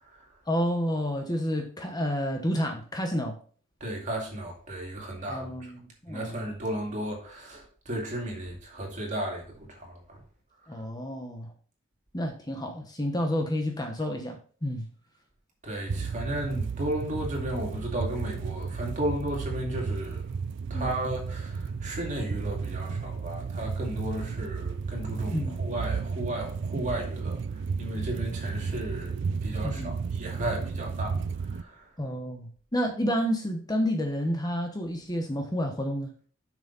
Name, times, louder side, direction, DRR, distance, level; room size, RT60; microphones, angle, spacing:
voice 1, 0.5-3.4 5.3-6.5 10.7-11.5 12.1-14.9 20.7-20.9 25.3-25.6 29.6-29.9 32.0-36.1, equal, 20° left, 1.0 m, -30 dB
voice 2, 3.8-5.7 6.1-10.2 15.6-20.4 20.7-27.4 27.8-31.2 31.5-31.8, right 1 dB, 40° right, 2.4 m, -34 dB
sound 1, 15.9-31.6, right 5 dB, 65° right, 0.4 m, -33 dB
7.2 x 6.3 x 4.1 m
head